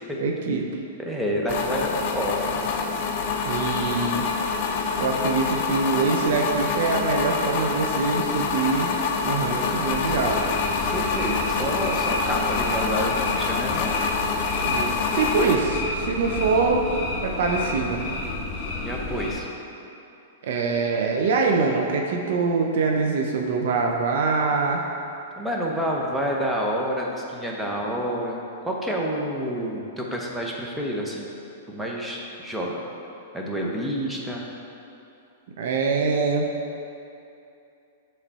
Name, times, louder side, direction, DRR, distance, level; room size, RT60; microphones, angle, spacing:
voice 1, 0.2-0.7 3.4-4.2 5.0-8.9 9.2-10.4 14.6-16.8 17.2-18.0 20.4-24.8 35.6-36.4, right 4 dB, 65° right, 1 dB, 0.6 m, -24 dB
voice 2, 1.0-2.6 10.8-13.9 18.8-19.5 25.4-31.4 31.7-32.8 33.3-34.4, equal, 5° right, -2 dB, 0.8 m, -28 dB
sound 1, 1.5-15.6, left 5 dB, 50° left, 0.5 m, -26 dB
sound 2, 9.9-19.3, left 2 dB, 30° left, 1.3 m, -31 dB
7.4 x 3.3 x 4.1 m, 2.7 s
hypercardioid pair, 130°, 0 cm